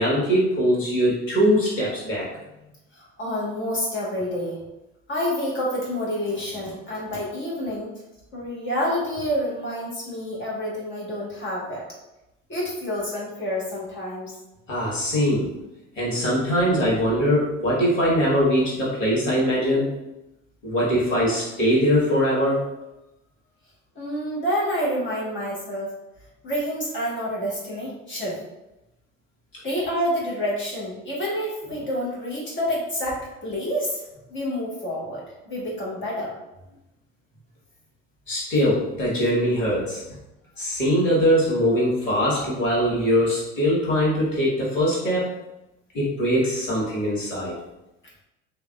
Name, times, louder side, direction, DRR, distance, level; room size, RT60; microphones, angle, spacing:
voice 1, 0.0-2.3 14.7-15.5 16.0-19.9 20.6-22.6 38.3-40.0 40.6-45.3 45.9-47.6, equal, 80° left, -6 dB, 1.2 m, -22 dB
voice 2, 2.6-4.6 5.1-7.9 8.3-11.8 12.5-14.3 23.9-25.9 26.4-28.4 29.6-34.0 34.3-36.3, equal, 30° left, -5 dB, 1.4 m, -28 dB
3.2 x 2.6 x 2.3 m, 0.93 s
figure-of-eight pair, 60°, 38 cm